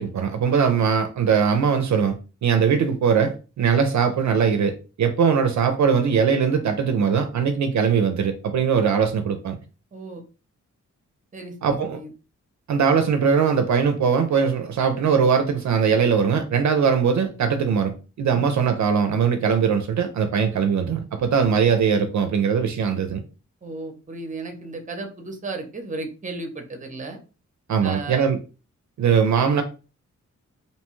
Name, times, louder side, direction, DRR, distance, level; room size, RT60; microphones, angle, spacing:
voice 1, 0.0-9.6 11.6-12.0 12.7-23.2 27.7-28.4 29.0-29.6, right 6 dB, 65° right, 0.4 m, -21 dB
voice 2, 9.9-10.2 11.3-12.1 23.6-27.2 27.8-28.3, right 3 dB, 25° right, 0.6 m, -34 dB
2.7 x 2.2 x 3.0 m
wide cardioid pair, 100°, 31 cm